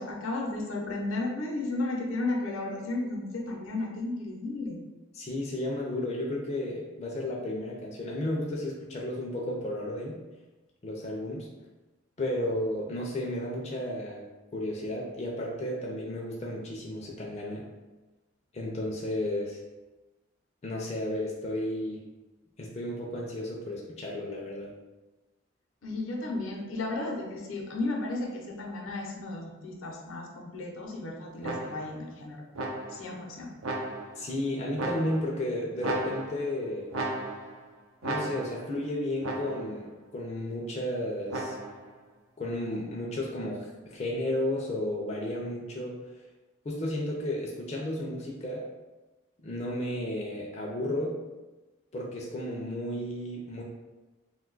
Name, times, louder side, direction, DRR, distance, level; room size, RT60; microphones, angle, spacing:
voice 1, 0.0-4.8 25.8-32.5 32.9-33.5, left 2 dB, 80° left, 0 dB, 0.6 m, -34 dB
voice 2, 5.1-10.2 10.8-11.5 12.2-14.2 14.5-17.6 18.5-19.6 20.6-22.0 22.6-24.7 34.2-36.9 38.0-41.6 42.4-46.1 46.6-48.7 49.4-51.2 51.9-53.6, left 1 dB, 30° left, -3 dB, 0.4 m, -33 dB
sound 1, 31.4-32.0 32.6-33.1 33.6-34.3 34.8-35.4 35.8-36.6 36.9-37.6 38.0-38.7 39.2-39.8 41.3-41.9, right 2 dB, 90° right, 0.5 m, -35 dB
2.6 x 2.2 x 3.7 m, 1.1 s
head